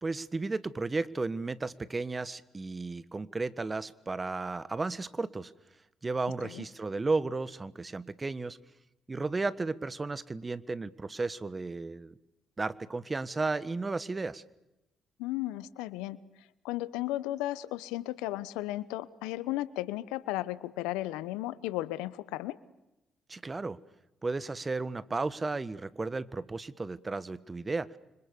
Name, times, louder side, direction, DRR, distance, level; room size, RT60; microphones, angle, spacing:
voice 1, 0.0-5.5 6.0-8.6 9.1-12.1 12.6-14.4 23.3-23.8 24.2-28.0, right 3 dB, 30° right, 16 dB, 1.5 m, -34 dB
voice 2, 15.2-16.2 16.6-22.6, left 16 dB, 85° left, 18 dB, 1.0 m, -34 dB
30.0 x 25.5 x 6.9 m, 0.94 s
hypercardioid pair, 45°, 0 cm